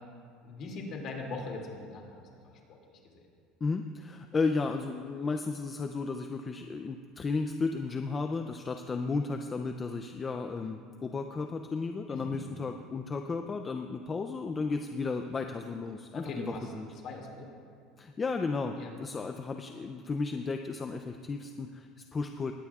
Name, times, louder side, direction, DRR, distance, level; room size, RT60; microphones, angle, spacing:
voice 1, 0.4-3.2 12.1-12.6 16.1-17.5 18.8-18.9, left 3 dB, 40° left, 0 dB, 2.4 m, -41 dB
voice 2, 3.6-16.4 16.7-16.9 18.0-22.5, left 4 dB, 15° left, 6 dB, 0.4 m, -34 dB
20.5 x 17.0 x 2.4 m, 2.2 s
cardioid pair, 175°, 0 cm